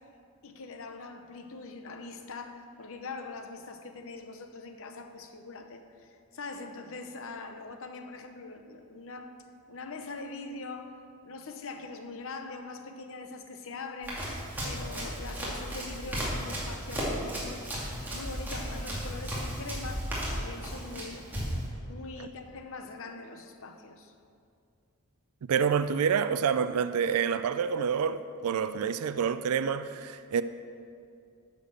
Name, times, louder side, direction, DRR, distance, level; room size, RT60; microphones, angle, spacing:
voice 1, 0.4-9.3 9.7-11.0 11.2-14.2 14.6-17.6 18.1-21.3 21.9-24.1, left 3 dB, 65° left, 0.9 m, -42 dB
Run, 14.0-21.7, equal, 10° right, 2.5 m, -35 dB
voice 2, 25.5-30.4, right 7 dB, 90° right, 0.4 m, -27 dB
9.7 x 6.8 x 6.3 m
head